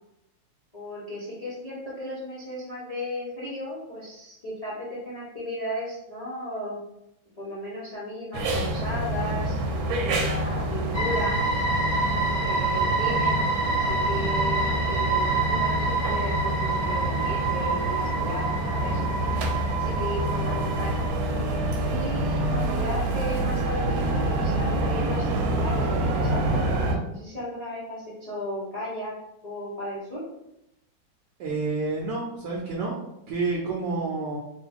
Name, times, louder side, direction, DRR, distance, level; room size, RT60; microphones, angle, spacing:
voice 1, 0.7-6.8 7.4-11.4 12.4-13.4 13.8-19.1 19.8-21.1 21.9-29.1 29.4-30.2, left 1 dB, 70° left, -8 dB, 0.3 m, -35 dB
sound 1, 8.3-27.0, right 1 dB, 90° right, 1.4 m, -27 dB
sound 2, 10.9-21.1, right 3 dB, 30° left, 1.1 m, -28 dB
voice 2, 31.4-33.0 33.3-34.4, right 3 dB, 70° right, -2 dB, 1.1 m, -29 dB
3.0 x 2.7 x 3.4 m, 0.83 s
omnidirectional pair, 2.1 m